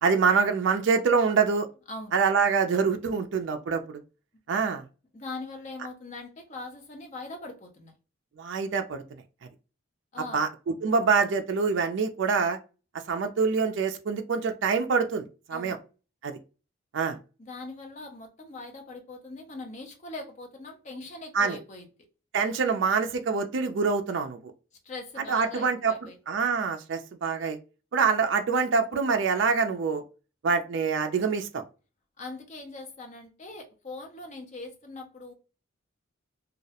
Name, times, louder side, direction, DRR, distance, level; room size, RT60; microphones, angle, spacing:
voice 1, 0.0-1.7 2.1-4.0 4.5-4.8 8.4-9.2 10.3-12.6 12.9-15.8 16.2-16.4 16.9-17.2 21.3-21.6 22.3-24.5 25.3-26.0 26.3-27.6 27.9-30.0 30.4-31.6, right 5 dB, 60° right, 0.3 m, -25 dB
voice 2, 1.9-2.2 5.1-7.9 10.1-10.5 15.5-15.8 17.4-21.9 24.8-26.2 32.2-35.3, left 2 dB, 35° left, 0.5 m, -41 dB
2.3 x 2.0 x 2.7 m
head